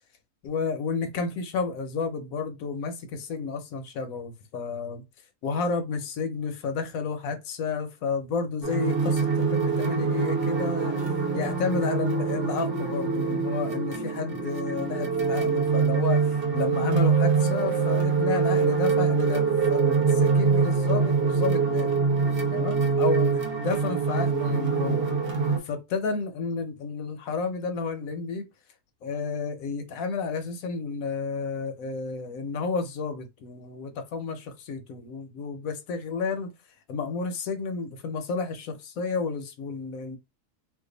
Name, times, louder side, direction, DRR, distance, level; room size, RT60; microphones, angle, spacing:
voice 1, 0.4-5.0 5.4-11.0 11.3-21.9 22.5-25.1 25.6-28.5 29.0-36.5 36.9-40.2, left 4 dB, 70° left, 1.0 m, -31 dB
sound 1, 8.6-25.6, right 5 dB, 45° right, 0.9 m, -24 dB
2.6 x 2.5 x 3.7 m
omnidirectional pair, 1.7 m